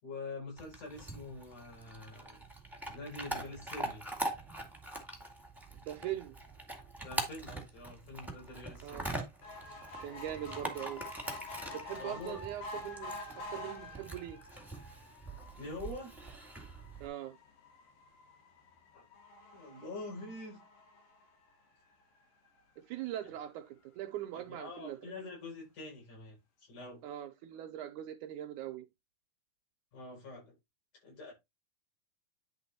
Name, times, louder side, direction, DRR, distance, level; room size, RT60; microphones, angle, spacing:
voice 1, 0.0-2.4 2.9-4.1 7.0-9.0 12.0-12.4 15.6-16.1 18.9-19.1 19.5-20.6 24.3-27.0 29.9-30.6 31.0-31.3, left 2 dB, 65° left, 7.0 m, -45 dB
Chewing mastication / Dog, 0.6-17.1, right 1 dB, ahead, 1.2 m, -43 dB
voice 2, 5.9-6.4 8.8-9.1 10.0-11.0 11.7-14.4 17.0-17.4 22.8-25.0 27.0-28.9, right 12 dB, 80° right, 2.1 m, -41 dB
sound 1, 9.4-22.0 22.6-22.7 23.0-23.1 23.3-23.4, left 2 dB, 85° left, 3.8 m, -48 dB
10.0 x 4.0 x 4.2 m
omnidirectional pair, 3.8 m